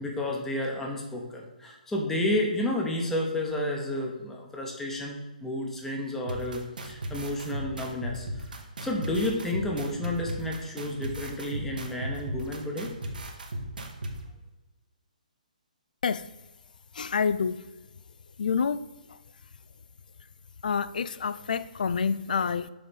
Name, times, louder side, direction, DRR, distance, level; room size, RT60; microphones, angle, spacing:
voice 1, 0.0-8.4 8.8-12.9, left 1 dB, 5° left, 0 dB, 0.9 m, -31 dB
sound 1, 6.3-14.1, right 1 dB, 85° right, 1.2 m, -36 dB
voice 2, 16.9-17.7 18.4-18.8 19.1-19.2 20.6-22.7, left 6 dB, 70° left, 14 dB, 0.3 m, -28 dB
7.0 x 3.2 x 5.2 m, 1.1 s
hypercardioid pair, 150°, 5 cm